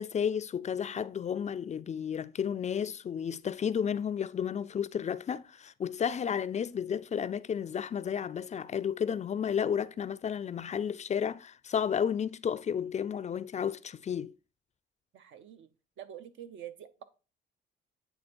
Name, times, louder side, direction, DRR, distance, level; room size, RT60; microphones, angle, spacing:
voice 1, 0.0-14.3, left 8 dB, 35° left, 0.4 m, -32 dB
voice 2, 15.1-15.7 16.0-17.0, right 10 dB, 75° right, 0.8 m, -46 dB
9.0 x 3.5 x 4.3 m
cardioid pair, 90°, 20 cm